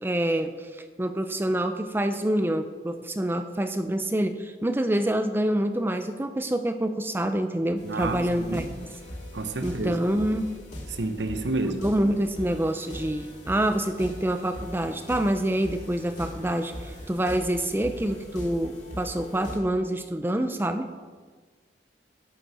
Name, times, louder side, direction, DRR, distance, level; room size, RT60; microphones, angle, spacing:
voice 1, 0.0-8.9 9.6-10.5 11.6-20.9, right 1 dB, 15° right, 8 dB, 0.5 m, -27 dB
sound 1, 7.8-19.6, left 1 dB, 45° left, 2.8 m, -40 dB
voice 2, 7.8-8.7 9.3-10.0 10.9-11.8, right 2 dB, 80° right, 8 dB, 0.9 m, -30 dB
10.5 x 8.0 x 6.2 m, 1.5 s
head